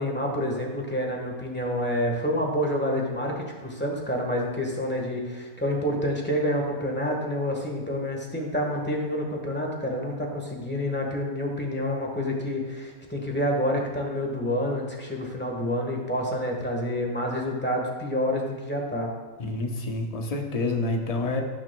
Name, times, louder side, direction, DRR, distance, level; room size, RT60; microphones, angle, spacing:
voice 1, 0.0-19.1, equal, 10° left, 0 dB, 1.3 m, -28 dB
voice 2, 19.4-21.4, left 2 dB, 30° left, 2 dB, 0.9 m, -28 dB
17.0 x 6.1 x 2.3 m, 1.3 s
omnidirectional pair, 1.4 m